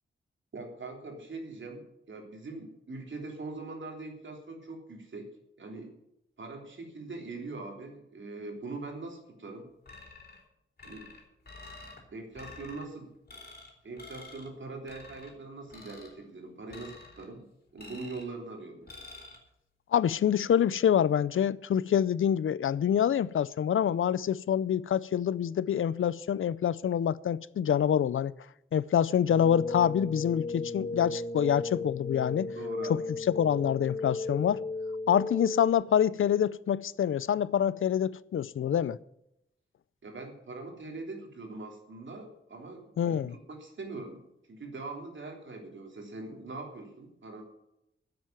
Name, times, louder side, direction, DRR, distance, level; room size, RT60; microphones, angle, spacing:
voice 1, 0.5-5.3 5.6-5.9 6.4-9.7 10.8-11.2 12.1-13.1 13.8-17.4 17.7-18.9 32.4-33.1 40.0-44.2 44.5-47.4, right 3 dB, 70° right, 3.3 m, -42 dB
sound 1, 9.9-10.4 10.8-12.0 12.3-12.8 13.3-13.7 14.0-14.5 14.9-15.3 15.7-16.2 16.7-17.3 17.8-18.3 18.9-19.4, left 3 dB, 50° left, 3.9 m, -48 dB
voice 2, 19.9-28.3 28.7-32.5 33.3-34.6 35.1-39.0 43.0-43.3, left 9 dB, 80° left, 0.5 m, -26 dB
sound 2, 29.3-35.7, left 3 dB, 25° left, 0.5 m, -35 dB
10.5 x 7.8 x 9.1 m
wide cardioid pair, 85°, 21 cm